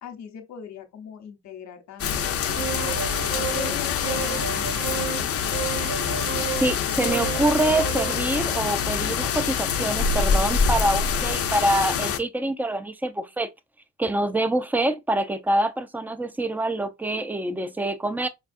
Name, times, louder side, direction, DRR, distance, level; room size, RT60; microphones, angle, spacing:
voice 1, 0.0-3.0 3.4-5.4, left 8 dB, 65° left, 1.0 m, -40 dB
sound 1, 2.0-12.2, left 6 dB, 50° left, 0.6 m, -25 dB
sound 2, 2.6-3.8 4.0-5.2 5.5-6.7 7.0-8.2, right 8 dB, 65° right, 1.3 m, -32 dB
voice 2, 6.6-13.5 14.0-18.3, right 1 dB, 5° right, 0.4 m, -25 dB
5.2 x 2.3 x 2.5 m
cardioid pair, 90°, 30 cm